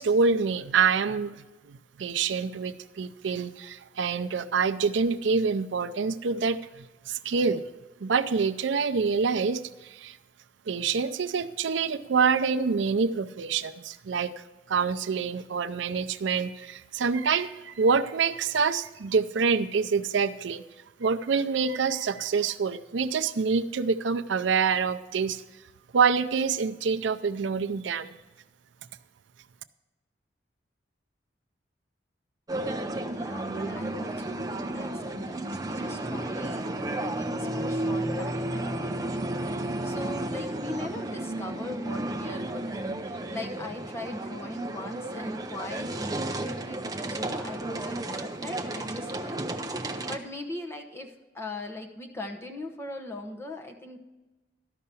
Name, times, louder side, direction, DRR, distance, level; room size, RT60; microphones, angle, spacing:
voice 1, 0.0-7.7 8.0-10.2 10.7-14.3 14.7-20.6 21.0-25.4 25.9-28.1, right 5 dB, 80° right, 10 dB, 0.5 m, -26 dB
sound 1, 32.5-50.2, right 1 dB, 20° right, 0.5 m, -33 dB
voice 2, 33.1-54.0, left 1 dB, 15° left, 3 dB, 0.9 m, -40 dB
13.0 x 5.6 x 6.8 m, 1.1 s
head